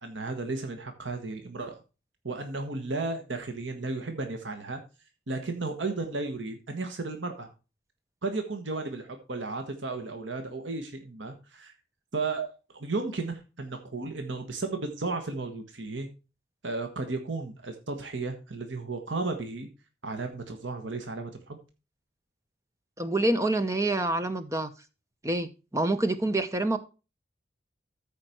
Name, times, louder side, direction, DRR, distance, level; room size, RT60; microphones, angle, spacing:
voice 1, 0.0-1.8 2.2-4.8 5.3-7.5 8.2-11.7 12.1-12.5 12.8-16.1 16.6-19.7 20.0-21.6, right 3 dB, 90° right, 6 dB, 1.4 m, -34 dB
voice 2, 23.0-24.7 25.2-26.8, right 2 dB, 15° right, 10 dB, 0.9 m, -27 dB
13.5 x 5.2 x 4.4 m, 0.31 s
head